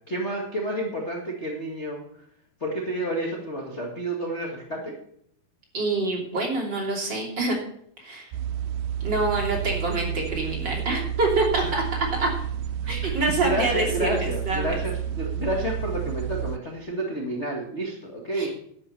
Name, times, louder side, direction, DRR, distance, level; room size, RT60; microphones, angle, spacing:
voice 1, 0.1-2.0 2.6-5.0 13.0-18.5, right 1 dB, 35° left, 0 dB, 1.0 m, -30 dB
voice 2, 5.7-7.6 8.0-8.3 9.0-11.8 12.2-12.3 12.9-14.7 18.3-18.5, right 2 dB, 30° right, -2 dB, 3.3 m, -26 dB
sound 1, 8.3-16.6, right 9 dB, 85° right, 1.9 m, -30 dB
11.5 x 8.1 x 6.8 m, 0.67 s
omnidirectional pair, 4.4 m